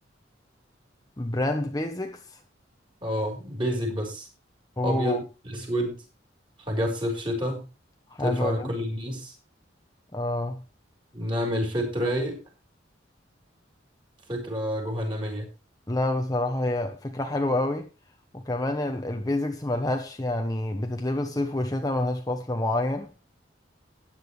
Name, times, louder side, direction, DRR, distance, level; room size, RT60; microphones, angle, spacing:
voice 1, 1.2-2.4 4.8-5.2 8.1-8.7 10.1-10.6 15.9-17.9 18.3-23.1, left 1 dB, 20° left, 1.0 m, -28 dB
voice 2, 3.0-4.3 4.8-6.0 6.7-7.7 8.2-9.3 11.1-12.4 14.3-15.5, equal, 25° right, 5.7 m, -29 dB
15.0 x 10.0 x 3.3 m
head